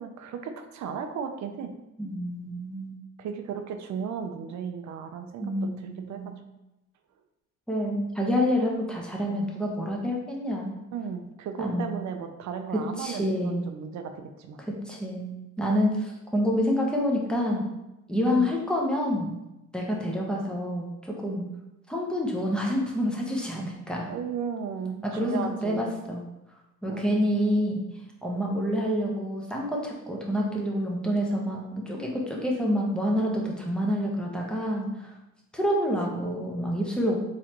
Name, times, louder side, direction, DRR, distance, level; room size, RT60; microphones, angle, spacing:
voice 1, 0.0-1.7 3.2-6.3 10.9-14.6 18.3-18.5 24.0-26.0 26.9-27.2 36.2-36.4, right 6 dB, 70° right, 6 dB, 0.6 m, -35 dB
voice 2, 2.0-2.9 5.4-6.3 7.7-10.7 11.6-11.9 13.0-13.6 14.9-17.6 18.1-19.3 19.7-21.5 21.9-24.1 25.0-26.2 26.8-27.8 28.2-34.9 35.5-37.2, equal, 5° left, -2 dB, 0.9 m, -27 dB
3.8 x 3.2 x 2.9 m, 0.93 s
cardioid pair, 90°, 30 cm